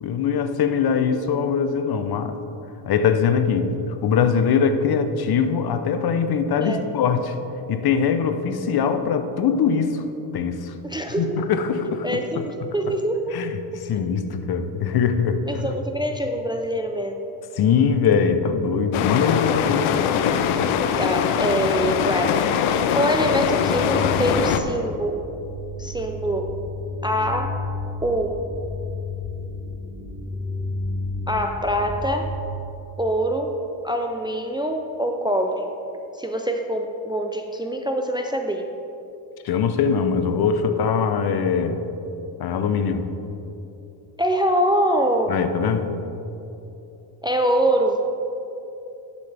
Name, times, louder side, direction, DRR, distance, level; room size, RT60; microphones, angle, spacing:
voice 1, 0.0-2.4 2.9-3.7 4.0-7.4 7.7-10.0 10.3-10.7 11.2-12.1 12.3-12.7 13.3-15.7 17.6-20.0 39.4-41.8 42.4-43.0 45.3-45.9, left 6 dB, 50° left, 8 dB, 0.8 m, -22 dB
voice 2, 10.8-11.5 12.0-13.4 13.7-13.8 15.5-17.3 21.0-22.4 22.9-25.2 25.8-26.6 27.0-27.6 28.0-28.5 31.3-32.3 33.0-33.6 33.8-35.7 36.2-38.7 44.2-45.4 47.2-48.1, right 1 dB, 10° right, 4 dB, 0.4 m, -24 dB
sound 1, 18.9-24.6, left 8 dB, 85° left, 0.7 m, -22 dB
sound 2, 23.2-32.3, left 2 dB, 15° left, 1.2 m, -32 dB
11.5 x 7.1 x 3.4 m, 3.0 s
cardioid pair, 100°, 48 cm